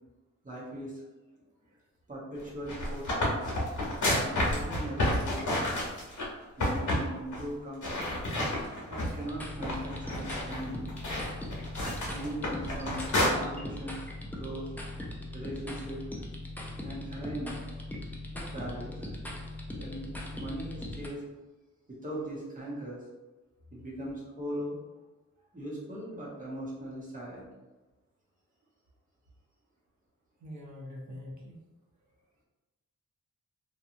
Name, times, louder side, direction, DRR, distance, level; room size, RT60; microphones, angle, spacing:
voice 1, 0.4-1.0 2.1-3.5 4.2-5.8 6.6-8.0 8.9-10.9 12.1-14.0 14.3-14.7 15.3-16.0 16.8-17.7 18.3-19.1 19.8-21.2 21.9-23.0 23.7-24.8 25.5-27.5, right 1 dB, 25° right, -6 dB, 0.8 m, -39 dB
voice 2, 1.3-1.8 30.4-31.6, left 1 dB, 70° right, -2 dB, 0.7 m, -45 dB
sound 1, 2.5-6.2 6.6-7.1 7.3-7.4 7.8-9.2 9.6-13.3, left 1 dB, 75° left, 1.0 m, -30 dB
sound 2, 9.3-21.1, left 1 dB, 5° left, 0.3 m, -40 dB
2.9 x 2.2 x 2.5 m, 1.2 s
wide cardioid pair, 140°, 30 cm